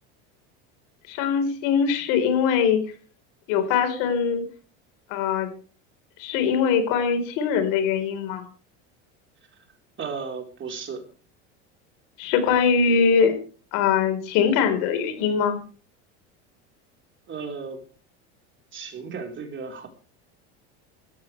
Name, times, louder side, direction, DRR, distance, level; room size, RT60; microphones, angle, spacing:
voice 1, 1.1-2.8 3.5-4.4 5.1-5.5 6.2-8.4 12.2-13.4 13.7-15.6, left 6 dB, 70° left, 7 dB, 4.5 m, -22 dB
voice 2, 10.0-11.0 17.3-17.8 18.7-19.9, right 5 dB, 35° right, 3 dB, 4.2 m, -34 dB
18.5 x 14.0 x 3.4 m, 0.39 s
supercardioid pair, 100°, 33 cm